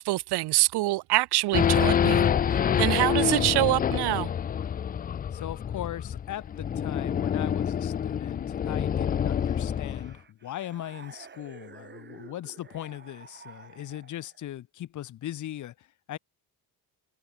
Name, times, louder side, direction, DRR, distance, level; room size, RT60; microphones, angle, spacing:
voice 1, 0.0-4.3, right 18 dB, 75° right, 1.1 m, -25 dB
Race car auto racing / Idling / Accelerating revving vroom, 1.5-10.1, left 8 dB, 25° left, 0.4 m, -27 dB
voice 2, 5.3-16.2, left 12 dB, 50° left, 1.3 m, -39 dB
sound 1, 8.6-14.4, right 6 dB, 25° right, 5.3 m, -51 dB
open air
cardioid pair, 165°, 39 cm